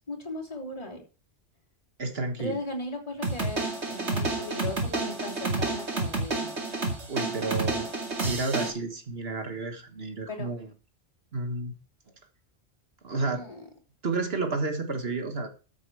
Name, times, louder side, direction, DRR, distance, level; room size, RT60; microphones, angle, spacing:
voice 1, 0.1-1.0 2.4-6.6 10.3-10.5 13.3-13.6, left 2 dB, 30° left, -1 dB, 3.4 m, -37 dB
voice 2, 2.0-2.6 7.1-7.9 8.2-10.7 11.3-11.7 13.0-13.4 14.0-15.5, right 3 dB, 65° right, 6 dB, 1.8 m, -31 dB
sound 1, 3.2-8.7, right 3 dB, 85° right, 2.7 m, -30 dB
14.0 x 7.2 x 4.8 m, 0.34 s
omnidirectional pair, 1.1 m